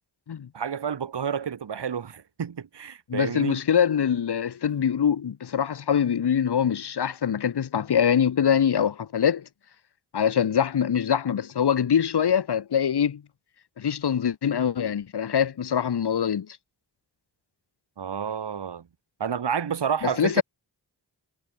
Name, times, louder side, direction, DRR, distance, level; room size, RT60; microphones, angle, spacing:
voice 1, 0.5-3.6 18.0-18.9 19.2-20.4, right 7 dB, 80° right, 1.6 m, -30 dB
voice 2, 3.1-9.4 10.1-13.2 13.8-16.5 20.0-20.4, left 8 dB, 70° left, 1.1 m, -24 dB
cardioid pair, 45°, 41 cm